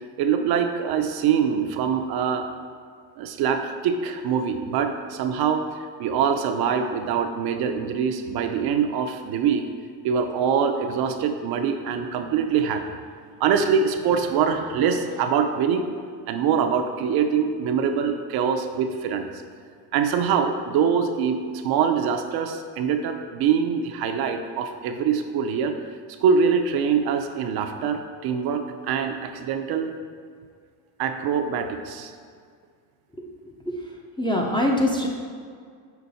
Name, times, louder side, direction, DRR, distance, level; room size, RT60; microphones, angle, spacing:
voice 1, 0.2-2.5 3.2-9.7 10.0-12.8 13.4-15.8 16.3-19.3 19.9-25.7 26.2-29.9 31.0-32.1, right 7 dB, 55° right, 6 dB, 0.6 m, -24 dB
voice 2, 34.2-35.1, left 1 dB, 10° left, -1 dB, 0.5 m, -23 dB
5.8 x 4.4 x 4.1 m, 2.1 s
cardioid pair, 125°, 46 cm